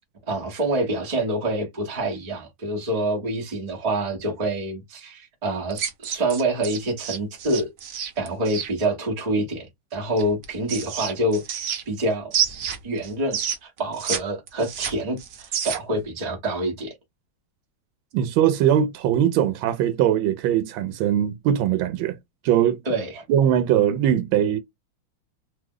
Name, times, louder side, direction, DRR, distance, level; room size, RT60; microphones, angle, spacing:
voice 1, 0.3-7.7 8.2-12.3 12.8-16.9 22.8-23.2, right 1 dB, 35° right, 0.6 m, -26 dB
sound 1, 5.7-8.7 10.2-12.0 12.3-14.2 14.5-16.0, right 8 dB, 65° right, 1.0 m, -28 dB
voice 2, 18.1-22.2 22.4-22.8 23.3-24.6, right 10 dB, 80° right, 1.3 m, -21 dB
3.2 x 2.1 x 3.6 m
omnidirectional pair, 2.2 m